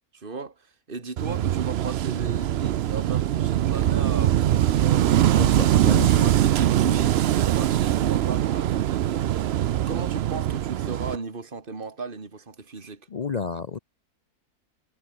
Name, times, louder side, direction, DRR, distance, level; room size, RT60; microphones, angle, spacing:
voice 1, 0.1-5.4 5.7-9.5 9.9-13.1, right 4 dB, 35° right, 2.6 m, -36 dB
Wind / Waves surf, 1.2-11.2, right 12 dB, 70° right, 0.6 m, -22 dB
Guitar, 3.8-9.8, equal, 10° right, 4.3 m, -50 dB
voice 2, 5.4-6.3 13.1-13.8, left 5 dB, 55° left, 0.4 m, -31 dB
omnidirectional pair, 1.6 m